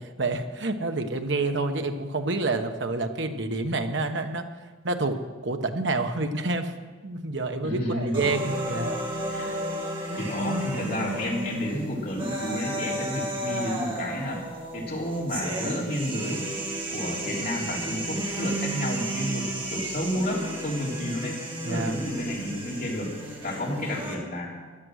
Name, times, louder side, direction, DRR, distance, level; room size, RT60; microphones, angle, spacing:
voice 1, 0.0-4.5 4.8-6.7 7.0-9.0 9.4-9.6 21.7-21.9, right 2 dB, 65° right, 6 dB, 1.2 m, -28 dB
voice 2, 7.6-8.3 9.3-9.5 10.2-14.4 14.7-16.5 16.9-21.4 21.6-23.1 23.4-24.5, left 1 dB, 50° left, -4 dB, 4.0 m, -31 dB
sound 1, 8.1-24.1, right 1 dB, 25° right, 2.7 m, -33 dB
16.5 x 11.5 x 6.4 m, 1.4 s
head